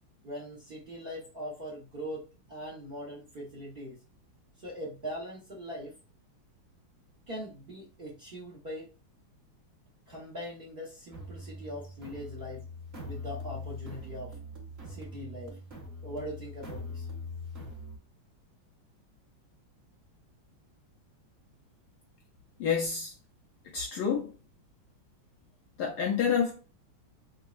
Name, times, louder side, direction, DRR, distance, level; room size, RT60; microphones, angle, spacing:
voice 1, 0.2-4.0 4.6-6.0 7.3-8.9 10.1-12.7 13.1-14.4 14.9-15.6 16.0-17.1, equal, 55° right, 0.6 m, -41 dB
sound 1, 11.1-18.0, left 2 dB, 40° right, 1.1 m, -42 dB
voice 2, 22.6-23.1 23.7-24.3 25.8-26.6, left 7 dB, 80° left, 0.9 m, -28 dB
5.3 x 2.0 x 2.3 m
omnidirectional pair, 2.3 m